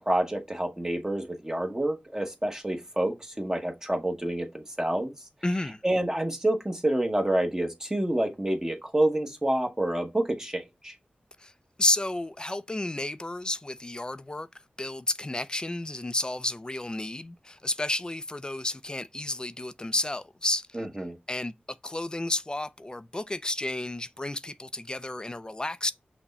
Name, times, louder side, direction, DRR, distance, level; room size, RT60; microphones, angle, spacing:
voice 1, 0.0-5.2 5.8-10.9 20.7-21.2, right 1 dB, 20° right, 0.9 m, -28 dB
voice 2, 5.4-5.8 11.4-11.5 11.8-14.5 14.8-20.8 21.3-21.5 21.8-25.9, left 2 dB, 25° left, 0.4 m, -31 dB
5.9 x 2.1 x 4.0 m
cardioid pair, 55°, 3 cm